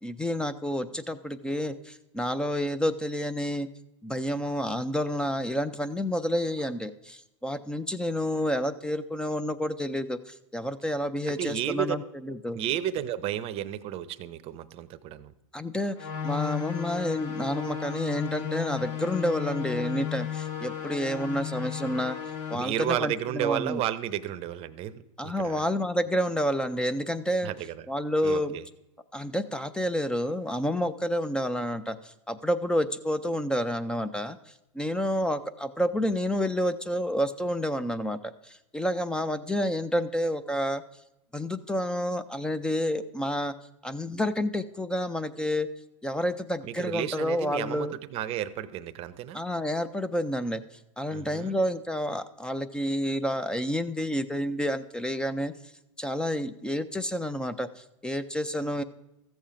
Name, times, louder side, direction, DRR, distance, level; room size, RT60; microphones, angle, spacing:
voice 1, 0.0-3.7 4.0-12.6 15.5-16.0 16.2-22.2 22.5-23.8 25.2-27.5 27.9-28.6 29.1-34.4 34.7-40.8 41.3-43.5 43.8-45.7 46.0-48.0 49.3-50.6 51.0-55.5 56.0-58.8, equal, 5° left, 13 dB, 0.4 m, -29 dB
voice 2, 11.3-12.0 12.5-15.3 22.5-25.6 27.4-27.9 28.2-28.6 46.6-49.4 51.1-51.6, right 11 dB, 35° right, 14 dB, 0.6 m, -32 dB
sound 1, 16.0-22.6, left 9 dB, 50° left, 1.9 m, -34 dB
14.0 x 7.1 x 5.0 m, 0.91 s
hypercardioid pair, 125°, 18 cm